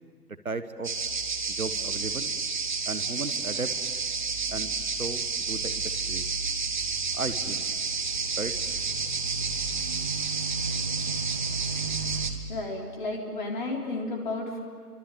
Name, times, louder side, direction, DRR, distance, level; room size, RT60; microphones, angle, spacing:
voice 1, 0.4-0.9 1.5-2.3 2.9-3.7 4.5-4.7 5.0-6.2 7.1-7.6 8.4-8.5, right 4 dB, 60° right, 11 dB, 1.6 m, -35 dB
sound 1, 0.8-12.3, right 4 dB, 30° right, 1.5 m, -30 dB
voice 2, 12.5-14.6, left 2 dB, 30° left, 0 dB, 3.9 m, -32 dB
29.0 x 24.5 x 8.0 m, 2.1 s
figure-of-eight pair, 150°, 47 cm